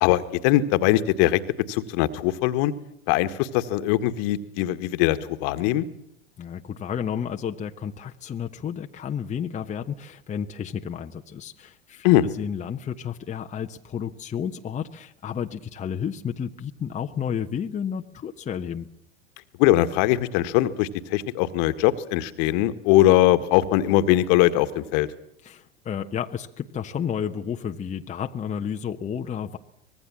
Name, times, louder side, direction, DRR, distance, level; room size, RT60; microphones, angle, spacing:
voice 1, 0.0-1.4 1.7-2.7 3.1-5.9 12.0-12.2 19.6-25.1, left 14 dB, 55° left, 11 dB, 1.7 m, -21 dB
voice 2, 6.4-12.1 12.4-18.9 25.4-29.6, left 8 dB, 20° left, 4 dB, 1.1 m, -31 dB
24.5 x 20.5 x 7.5 m, 0.72 s
hypercardioid pair, 85°, 32 cm